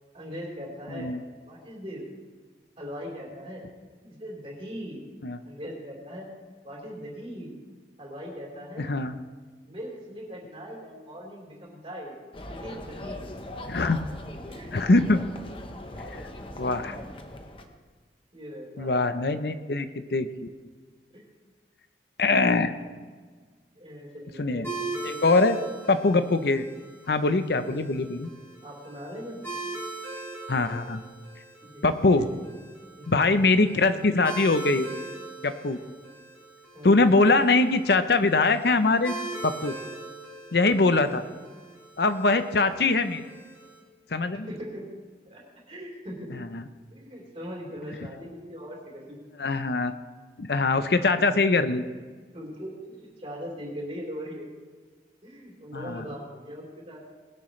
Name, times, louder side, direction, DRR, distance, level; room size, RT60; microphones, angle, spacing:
voice 1, 0.1-1.1 1.5-2.0 2.8-3.6 4.0-5.1 5.4-6.3 6.6-7.5 8.0-8.9 9.7-12.1 12.5-13.3 14.5-14.7 15.9-16.2 16.8-17.0 18.3-19.0 21.1-21.3 22.9-23.0 23.2-23.3 23.8-25.6 27.8-27.9 28.6-29.4 31.6-32.3 33.0-33.3 36.7-37.0 44.3-44.9 45.3-46.3 46.9-49.2 52.3-54.5 55.2-57.0, equal, 35° right, -3 dB, 3.9 m, -40 dB
voice 2, 8.8-9.1 13.7-14.0 14.7-15.2 16.6-17.0 18.8-20.5 22.2-22.7 24.4-24.7 25.0-25.6 25.9-26.7 27.1-28.3 30.5-31.0 31.8-32.3 33.1-34.9 35.4-35.8 36.8-39.1 39.4-39.7 40.5-41.2 42.0-43.2 44.1-44.5 46.5-46.6 49.4-49.9 50.4-51.8 55.7-56.0, left 3 dB, 65° left, 10 dB, 0.7 m, -22 dB
sound 1, 12.3-17.6, left 1 dB, 30° left, 1.0 m, -40 dB
sound 2, 24.6-43.8, right 3 dB, 15° left, 4.1 m, -41 dB
20.0 x 12.0 x 3.2 m, 1.5 s
head